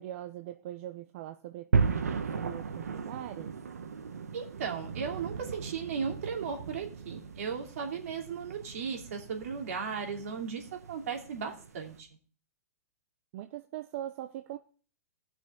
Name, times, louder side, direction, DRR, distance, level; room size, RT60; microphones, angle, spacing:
voice 1, 0.0-3.5 13.3-14.6, right 13 dB, 55° right, 8 dB, 0.8 m, -41 dB
sound 1, 1.7-12.0, right 5 dB, 85° right, 1.4 m, -36 dB
voice 2, 4.3-12.1, right 6 dB, 70° right, 2 dB, 3.1 m, -36 dB
18.5 x 6.3 x 3.8 m, 0.40 s
hypercardioid pair, 125°, 8 cm